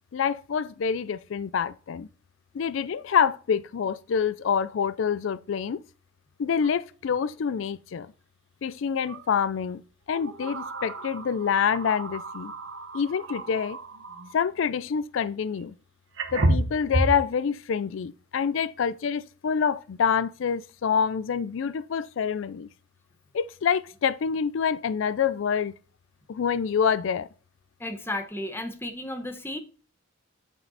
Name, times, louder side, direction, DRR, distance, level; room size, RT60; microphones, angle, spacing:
voice 1, 0.1-2.1 2.5-5.8 6.4-8.1 8.6-9.8 10.1-12.5 12.9-13.8 14.3-15.7 16.3-22.7 23.3-25.7 26.3-27.3, left 7 dB, 75° left, 0.4 m, -26 dB
sound 1, 6.6-6.7 7.1-7.2 9.1-9.3 10.1-14.4 15.6-15.7 16.2-17.3, right 1 dB, 80° right, 1.2 m, -31 dB
voice 2, 27.8-29.6, left 1 dB, 10° left, 1.0 m, -33 dB
8.5 x 5.3 x 4.0 m
head